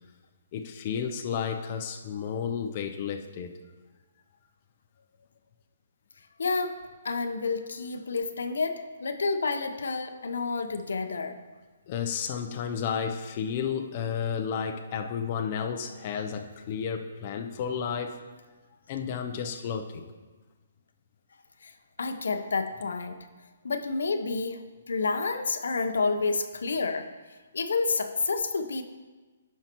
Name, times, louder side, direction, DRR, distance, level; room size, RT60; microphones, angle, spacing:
voice 1, 0.5-3.5 11.9-18.2 18.9-20.1, left 7 dB, 35° left, 4 dB, 0.6 m, -32 dB
voice 2, 6.4-6.8 7.0-11.4 21.6-21.7 22.0-23.2 23.6-27.1 27.5-28.8, left 4 dB, 80° left, 7 dB, 0.8 m, -29 dB
15.0 x 5.6 x 3.0 m, 1.3 s
hypercardioid pair, 160°, 0 cm